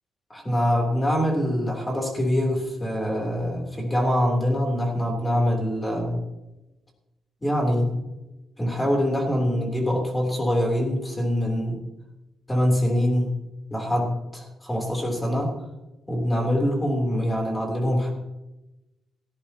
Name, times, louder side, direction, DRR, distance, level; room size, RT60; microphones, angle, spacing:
voice 1, 0.3-6.3 7.4-8.0 8.6-11.8 12.5-13.4 13.7-15.5 16.1-18.1, equal, 10° left, 0 dB, 3.2 m, -24 dB
17.0 x 14.0 x 2.9 m, 0.99 s
cardioid pair, 175°, 0 cm